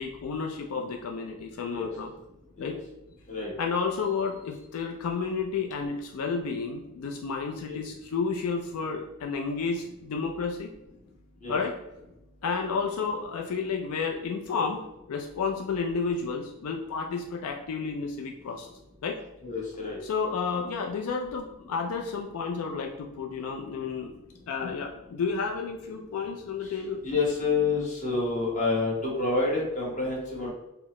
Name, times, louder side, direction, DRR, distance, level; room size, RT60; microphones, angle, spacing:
voice 1, 0.0-2.1 2.6-2.8 3.6-10.7 11.5-11.7 12.4-18.7 19.0-19.2 20.0-24.1 24.5-27.0, left 5 dB, 80° left, 2 dB, 0.4 m, -31 dB
voice 2, 19.4-20.0 26.6-30.5, left 3 dB, 35° left, -4 dB, 1.1 m, -28 dB
4.5 x 2.0 x 3.0 m, 0.91 s
head